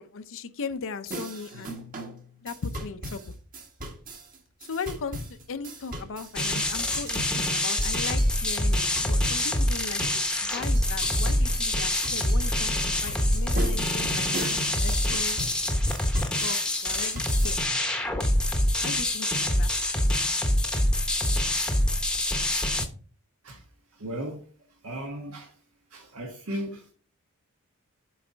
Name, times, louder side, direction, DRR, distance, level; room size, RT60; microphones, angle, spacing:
voice 1, 0.0-1.7 2.4-3.3 4.6-15.4 16.4-17.6 18.8-19.7, left 4 dB, 65° left, 0.6 m, -38 dB
sound 1, 1.1-17.6, right 1 dB, 40° right, 1.5 m, -40 dB
sound 2, 6.4-22.9, left 1 dB, 5° left, 0.9 m, -25 dB
voice 2, 23.9-24.5 24.8-25.6 25.9-26.9, equal, 70° right, 1.3 m, -36 dB
7.8 x 4.1 x 5.0 m
head